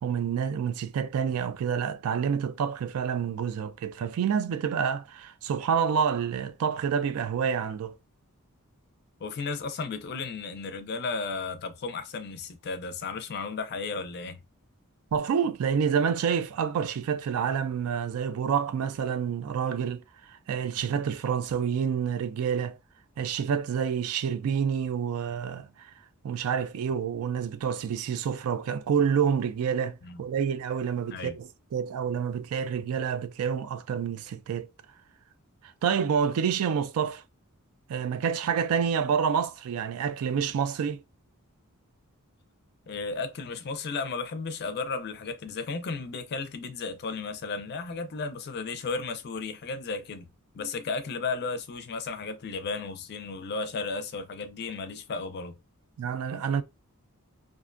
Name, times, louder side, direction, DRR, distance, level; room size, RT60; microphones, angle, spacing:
voice 1, 0.0-7.9 15.1-20.0 20.3-22.8 23.2-25.9 26.2-34.7 35.8-37.2 37.9-41.0 56.0-56.6, right 7 dB, 70° right, 0.3 m, -28 dB
voice 2, 9.2-14.4 20.7-20.9 30.0-30.2 31.1-31.4 42.9-50.3 50.5-55.6, left 4 dB, 50° left, 0.4 m, -34 dB
2.5 x 2.1 x 2.5 m
head